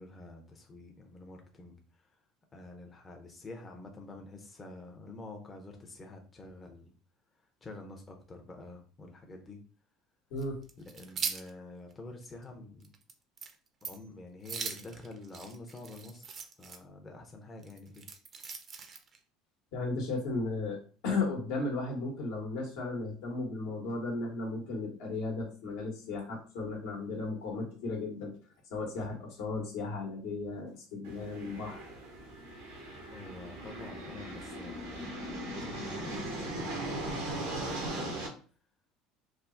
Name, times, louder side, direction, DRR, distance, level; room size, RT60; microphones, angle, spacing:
voice 1, 0.0-2.2 2.5-6.9 7.3-9.6 10.8-12.9 13.8-18.1 33.1-37.7, left 2 dB, 25° left, 2 dB, 0.5 m, -48 dB
voice 2, 10.3-10.6 19.7-20.8 21.0-28.4 28.7-31.9, left 3 dB, 75° left, -1 dB, 1.0 m, -35 dB
sound 1, 10.4-11.5 11.9-12.0 12.4-12.5 12.8-13.1 13.4-13.5 13.8-14.1 14.4-16.8 17.6-19.2, right 5 dB, 45° right, 0.5 m, -40 dB
sound 2, 31.0-38.3, right 1 dB, 90° right, 0.8 m, -39 dB
3.3 x 2.0 x 2.4 m, 0.39 s
supercardioid pair, 85°, 0 cm